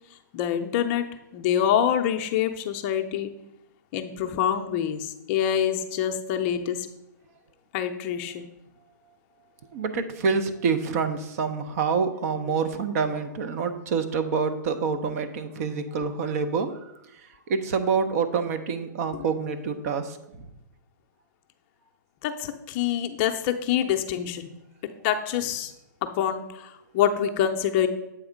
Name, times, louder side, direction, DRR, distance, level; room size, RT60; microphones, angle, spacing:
voice 1, 0.3-1.0 1.3-3.3 3.9-6.9 7.7-8.4 12.5-12.6 19.1-19.2 22.2-24.5 25.0-25.7 26.0-27.9, left 9 dB, 35° left, 5 dB, 0.5 m, -26 dB
voice 2, 9.7-16.7 17.5-20.2, right 5 dB, 50° right, 9 dB, 0.7 m, -27 dB
7.9 x 3.5 x 5.0 m, 0.88 s
hypercardioid pair, 140°, 10 cm